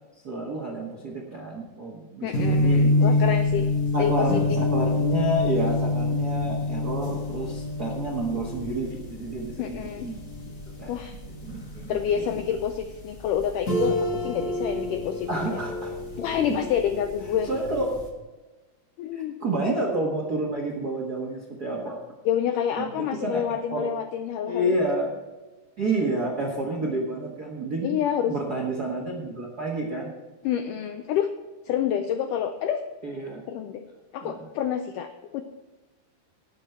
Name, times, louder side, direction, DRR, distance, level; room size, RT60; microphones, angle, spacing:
voice 1, 0.2-3.2 3.9-11.0 11.2-12.4 15.3-15.9 16.4-16.5 17.4-17.9 19.1-22.0 22.8-23.9 24.5-25.2 25.8-28.0 28.3-30.1 33.0-33.4 33.9-34.5, right 2 dB, 70° right, -1 dB, 0.9 m, -30 dB
voice 2, 2.2-3.7 4.0-4.6 9.6-10.1 10.9-11.2 11.9-15.3 16.2-17.5 19.0-19.4 22.3-24.8 27.8-28.4 30.4-31.3 31.7-32.8 33.5-33.8 34.1-35.4, left 9 dB, 85° left, 7 dB, 1.8 m, -28 dB
sound 1, 2.3-18.0, left 2 dB, 45° left, 1.0 m, -27 dB
18.5 x 6.5 x 4.5 m, 1.2 s
omnidirectional pair, 4.4 m